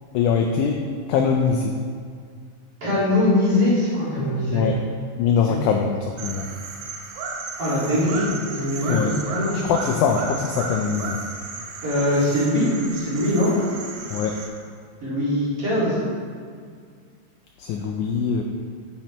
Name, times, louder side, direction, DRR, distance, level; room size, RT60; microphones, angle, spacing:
voice 1, 0.1-0.8 1.1-1.7 4.5-4.8 5.2-6.4 8.9-9.1 9.6-11.2 14.1-14.4 17.6-18.4, left 6 dB, 90° left, 3 dB, 1.7 m, -22 dB
voice 2, 2.8-4.7 5.5-5.6 7.6-9.6 11.8-13.5 15.0-16.0, left 1 dB, 45° right, -9 dB, 2.7 m, -22 dB
sound 1, 6.2-14.5, right 4 dB, 80° right, 2.5 m, -34 dB
9.0 x 6.6 x 3.0 m, 2.1 s
omnidirectional pair, 4.0 m